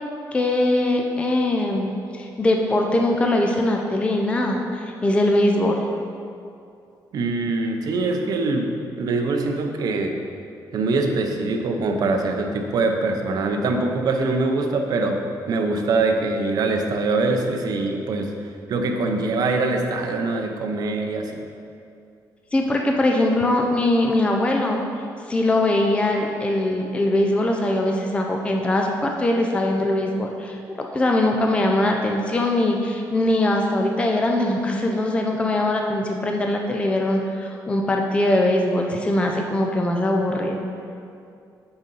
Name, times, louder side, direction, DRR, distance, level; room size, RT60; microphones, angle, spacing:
voice 1, 0.3-5.8 22.5-24.8 25.3-40.6, left 1 dB, 15° left, 1 dB, 0.4 m, -21 dB
voice 2, 7.1-8.7 9.0-10.2 10.7-15.2 15.5-18.3 18.7-21.3, right 3 dB, 55° right, 3 dB, 0.7 m, -23 dB
8.0 x 3.9 x 5.5 m, 2.5 s
cardioid pair, 160°, 8 cm